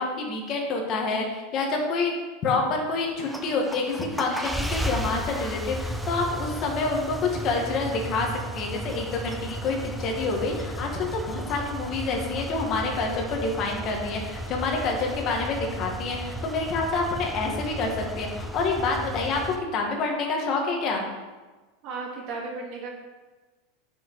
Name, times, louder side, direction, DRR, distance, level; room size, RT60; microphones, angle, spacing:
voice 1, 0.0-2.1 2.4-8.3 8.5-21.0, left 3 dB, 30° left, 1 dB, 1.6 m, -27 dB
sound 1, 3.1-19.6, right 1 dB, ahead, 0.5 m, -34 dB
voice 2, 21.8-22.9, right 4 dB, 40° right, -1 dB, 2.2 m, -34 dB
8.5 x 6.0 x 4.6 m, 1.2 s
supercardioid pair, 170°, 0 cm